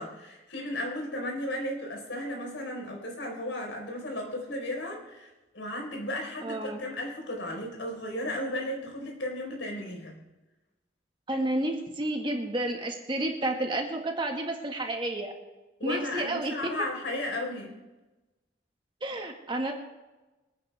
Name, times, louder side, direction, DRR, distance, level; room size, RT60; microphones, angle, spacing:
voice 1, 0.0-10.1 15.8-17.7, left 1 dB, 90° left, 1 dB, 4.4 m, -35 dB
voice 2, 6.4-6.8 11.3-15.3 15.8-16.7 19.0-19.7, right 1 dB, 25° right, 2 dB, 1.8 m, -31 dB
27.0 x 9.4 x 3.5 m, 1.1 s
head